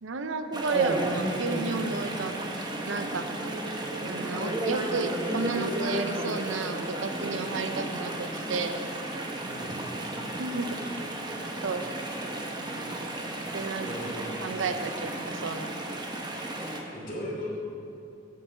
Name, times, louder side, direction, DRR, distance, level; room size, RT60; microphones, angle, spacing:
voice 1, 0.0-2.3 2.8-3.3 4.0-8.9 10.4-10.7 11.6-11.9 13.5-13.9 14.4-15.7, right 4 dB, 85° right, 7 dB, 0.7 m, -32 dB
Chatter / Stream, 0.5-16.8, right 1 dB, 20° right, 0.9 m, -33 dB
voice 2, 9.5-9.8 13.8-14.4 16.9-17.5, equal, 45° left, -5 dB, 2.9 m, -37 dB
8.8 x 7.3 x 7.1 m, 2.6 s
head